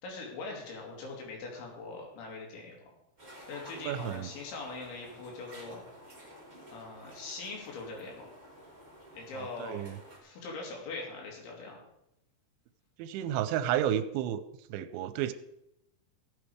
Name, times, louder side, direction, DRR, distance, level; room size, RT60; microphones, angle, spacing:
voice 1, 0.0-2.8 3.5-5.8 6.7-8.3 9.1-9.8 10.2-11.8 13.2-13.3, left 3 dB, 85° left, -1 dB, 5.2 m, -42 dB
sound 1, 3.2-10.2, equal, 10° right, 2.6 m, -52 dB
voice 2, 3.7-4.3 9.3-10.0 13.0-14.4 14.7-15.3, right 11 dB, 90° right, 12 dB, 3.0 m, -32 dB
15.5 x 9.0 x 5.0 m, 0.84 s
omnidirectional pair, 5.2 m